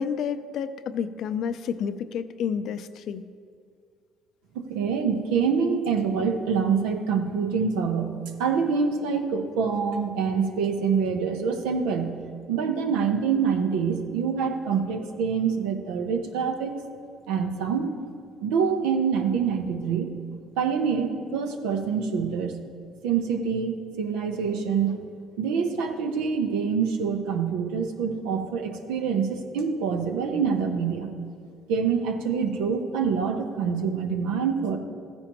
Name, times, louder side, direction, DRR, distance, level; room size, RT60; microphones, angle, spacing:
voice 1, 0.0-3.3, left 7 dB, 65° left, 12 dB, 0.5 m, -30 dB
voice 2, 4.5-12.1 12.5-16.7 17.3-18.0 18.4-20.1 20.6-22.6 23.0-24.9 25.4-31.1 31.7-34.8, right 6 dB, 80° right, 5 dB, 0.9 m, -26 dB
14.0 x 9.8 x 3.0 m, 2.2 s
hypercardioid pair, 65°, 0 cm